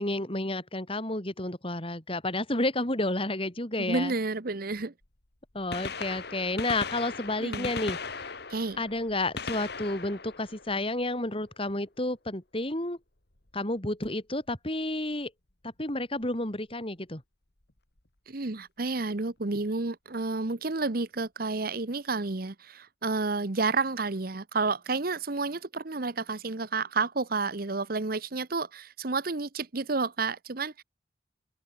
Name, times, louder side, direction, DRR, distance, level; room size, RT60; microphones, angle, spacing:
voice 1, 0.0-4.1 5.5-8.3 8.8-13.0 13.5-15.3 15.6-17.2, left 2 dB, 30° left, 3.9 m, -31 dB
voice 2, 3.8-4.9 7.4-7.7 8.5-8.8 18.3-30.8, right 3 dB, 50° right, 1.0 m, -30 dB
Gunshot gunfire, 5.0-5.1 5.6-11.4 13.4-13.5 14.5-14.6 16.2-16.3 17.7-17.8 18.0-18.1, left 4 dB, 60° left, 2.4 m, -38 dB
open air
head